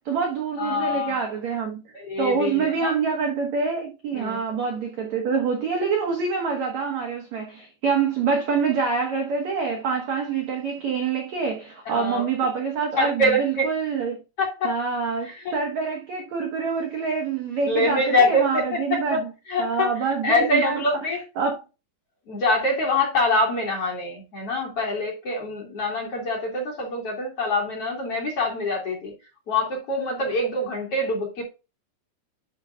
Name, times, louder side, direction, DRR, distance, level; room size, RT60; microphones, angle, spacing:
voice 1, 0.0-1.8 2.2-14.2 14.6-19.3 19.6-20.8 21.4-21.6, right 5 dB, 80° right, 1.6 m, -26 dB
voice 2, 0.6-1.1 1.9-2.9 4.1-4.4 11.9-12.2 13.0-13.6 14.4-14.7 15.2-15.6 17.7-18.8 19.1-19.2 19.5-19.9 20.2-21.2 22.3-29.1 29.5-31.4, left 2 dB, 40° left, 2.7 m, -24 dB
12.0 x 5.0 x 2.4 m
omnidirectional pair, 5.2 m